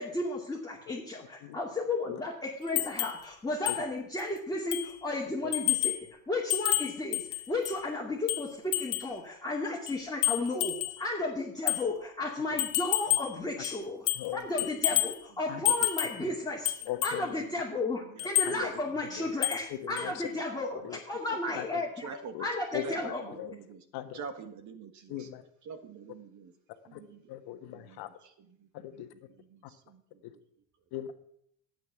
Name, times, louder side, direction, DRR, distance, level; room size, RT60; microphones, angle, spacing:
voice 1, 0.0-5.9 6.3-14.1 14.3-16.7 17.0-22.1 22.4-23.2, left 2 dB, 10° left, -4 dB, 2.4 m, -33 dB
sound 1, 2.8-3.2 3.7-3.8 4.2-4.3 4.7-5.0 5.5-6.0 6.5-7.8 8.3-9.1 9.9-11.0 11.7-11.8 12.6-13.4 13.6-14.3 14.6-15.2 15.6-16.2 16.6-17.2 18.2-18.5 19.4-19.7 20.0-20.1, left 17 dB, 85° left, 1.4 m, -30 dB
voice 2, 14.1-14.7 15.5-15.7 16.8-17.4 18.4-18.7 19.2-19.3 19.7-20.3 20.8-21.0 21.5-21.8 22.3-22.5 22.7-23.5 23.9-24.2 25.1-25.4 26.9-27.0 27.3-28.1 28.7-29.1 30.2-30.3 30.9-31.3, left 12 dB, 65° left, 9 dB, 1.5 m, -39 dB
voice 3, 18.0-18.8 19.2-19.3 21.5-21.6 22.0-22.4 22.8-23.8 24.1-25.3 25.7-26.5 26.9-27.2 27.7-28.0 28.6-28.7 29.5-30.0, right 5 dB, 45° right, 8 dB, 1.7 m, -45 dB
11.5 x 8.9 x 6.0 m, 0.70 s
supercardioid pair, 105°, 42 cm